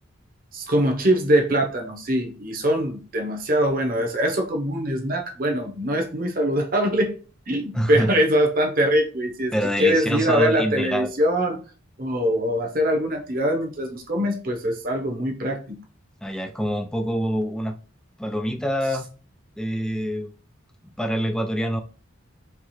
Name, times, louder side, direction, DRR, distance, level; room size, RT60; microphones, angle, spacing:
voice 1, 0.5-7.2 7.5-9.5 9.8-11.6 12.0-15.7, equal, 45° right, 1.0 m, -23 dB
voice 2, 7.7-8.1 9.5-11.1 16.2-17.8 18.2-19.1 19.6-20.3 21.0-21.8, equal, 5° left, 0.4 m, -26 dB
4.7 x 3.2 x 3.1 m
head